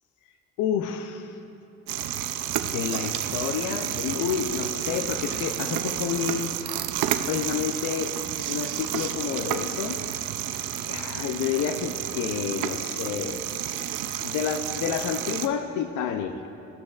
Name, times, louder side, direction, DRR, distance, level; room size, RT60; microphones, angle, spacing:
voice 1, 0.6-1.4 2.6-6.6 7.3-8.2 8.5-10.0 10.9-13.5 14.2-16.5, left 8 dB, 90° left, 7 dB, 0.5 m, -29 dB
sound 1, 1.9-15.5, right 11 dB, 85° right, 0.5 m, -31 dB
14.0 x 11.5 x 2.4 m, 2.8 s
cardioid pair, 90°, 30 cm